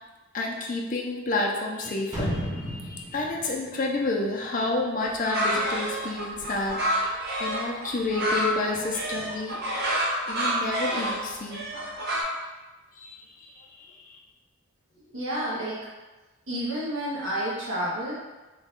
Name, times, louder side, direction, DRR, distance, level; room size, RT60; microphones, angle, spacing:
voice 1, 0.3-9.6 10.3-11.6 12.9-14.2, left 2 dB, 40° left, -1 dB, 0.5 m, -30 dB
sound 1, 2.1-4.9 5.3-5.4, equal, 20° right, 0.8 m, -34 dB
sound 2, 5.0-12.2, equal, 50° right, 0.7 m, -28 dB
voice 2, 15.1-15.9 16.5-18.1, equal, 80° right, -7 dB, 0.9 m, -30 dB
4.1 x 2.3 x 3.6 m, 1.2 s
head